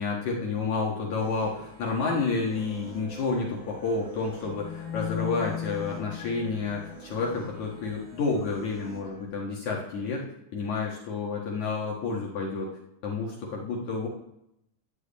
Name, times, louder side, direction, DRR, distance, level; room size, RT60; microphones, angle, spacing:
voice 1, 0.0-10.3 10.5-12.7 13.0-14.1, left 4 dB, 55° left, -2 dB, 2.6 m, -30 dB
sound 1, 1.2-9.2, right 3 dB, 80° right, 5.9 m, -49 dB
sound 2, 2.5-8.0, left 8 dB, 75° left, 2.9 m, -39 dB
12.0 x 4.7 x 8.5 m, 0.80 s
omnidirectional pair, 4.5 m